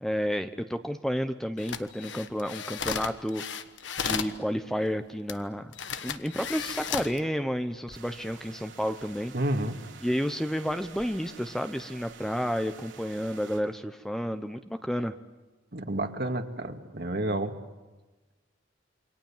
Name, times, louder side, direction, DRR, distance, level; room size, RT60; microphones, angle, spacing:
voice 1, 0.0-3.4 4.0-5.7 6.0-9.3 10.0-15.1, equal, ahead, 9 dB, 0.8 m, -31 dB
sound 1, 1.6-4.4 5.3-5.4 5.7-7.2 7.7-8.0, left 7 dB, 75° left, 1.3 m, -34 dB
sound 2, 7.9-13.6, right 5 dB, 85° right, 3.7 m, -49 dB
voice 2, 9.3-9.8 15.7-17.5, right 1 dB, 55° right, 5 dB, 2.2 m, -30 dB
28.0 x 25.0 x 7.4 m, 1.2 s
head